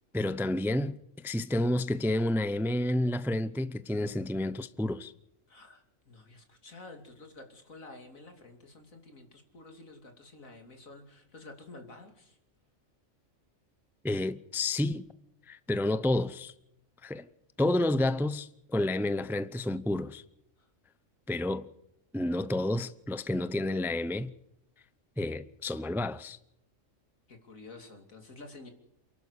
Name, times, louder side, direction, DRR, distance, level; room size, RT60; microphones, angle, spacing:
voice 1, 0.1-5.1 14.0-15.0 15.5-16.5 17.0-17.2 17.6-20.2 21.3-21.7 22.1-24.3 25.2-26.4, left 1 dB, ahead, 0.5 m, -30 dB
voice 2, 5.5-12.4 20.6-20.7 27.3-28.7, left 2 dB, 90° left, 3.3 m, -50 dB
28.5 x 11.5 x 8.2 m
omnidirectional pair, 1.4 m